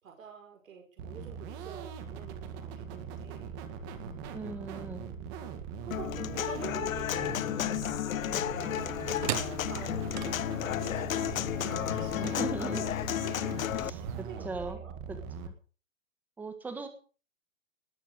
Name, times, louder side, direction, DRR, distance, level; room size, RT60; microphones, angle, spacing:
voice 1, 0.0-3.5 3.8-4.1 4.4-4.7 5.6-9.0 9.7-12.9 13.3-15.0, right 7 dB, 80° right, 1 dB, 6.0 m, -48 dB
sound 1, 1.0-15.5, right 6 dB, 20° right, 1.8 m, -41 dB
voice 2, 4.3-5.1 12.1-12.9 13.8-14.0 14.4-14.8 15.4-15.5 16.4-16.9, right 4 dB, 5° right, 7 dB, 1.6 m, -38 dB
Human voice / Acoustic guitar, 5.9-13.9, left 12 dB, 80° left, 0.7 m, -32 dB
sound 2, 8.8-14.2, right 11 dB, 35° right, 1.4 m, -41 dB
20.0 x 7.2 x 8.1 m, 0.39 s
hypercardioid pair, 175°, 40 cm